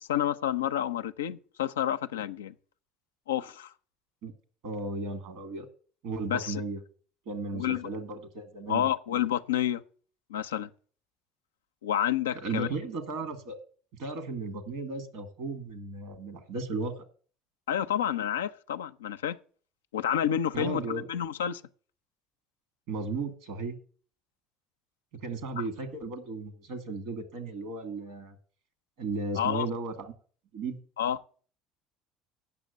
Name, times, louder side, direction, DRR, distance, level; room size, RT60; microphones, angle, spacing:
voice 1, 0.0-2.5 3.3-3.7 6.3-6.6 7.5-7.9 8.7-9.8 10.3-10.7 11.8-12.7 17.7-19.4 19.9-21.6 25.6-25.7 29.4-29.7 31.0-31.2, left 10 dB, 90° left, 0.4 m, -29 dB
voice 2, 4.6-5.7 6.0-6.8 7.3-8.9 12.4-13.6 14.0-16.9 20.5-21.1 22.9-23.8 25.2-28.4 29.0-30.1 30.5-30.8, right 3 dB, 70° right, 1.8 m, -35 dB
8.6 x 6.5 x 7.9 m
hypercardioid pair, 65°, 0 cm